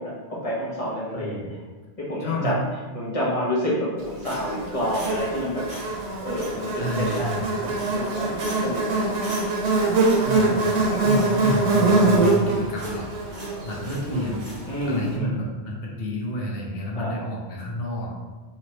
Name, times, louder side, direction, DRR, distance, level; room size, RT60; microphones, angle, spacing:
voice 1, 0.0-1.4 2.0-2.6 2.9-5.7 6.2-7.3 7.6-8.3 8.6-9.5 14.7-15.3 16.9-17.1, equal, 35° left, -7 dB, 1.1 m, -28 dB
voice 2, 1.1-1.5 2.2-2.6 6.8-7.5 10.1-14.5 14.8-18.1, equal, 65° left, -3 dB, 1.0 m, -30 dB
sound 1, 4.2-5.4 5.7-6.0 6.4-6.6 7.1-7.5 7.8-8.1 8.4-8.8 9.2-9.7 10.0-10.9 11.1-11.4 11.7-12.5 12.8-13.0 13.3-14.1 14.4-14.6, right 1 dB, 70° right, 1.2 m, -40 dB
Buzz, 4.3-14.8, right 2 dB, 90° right, 1.0 m, -23 dB
3.1 x 3.1 x 2.9 m, 1.3 s
omnidirectional pair, 1.1 m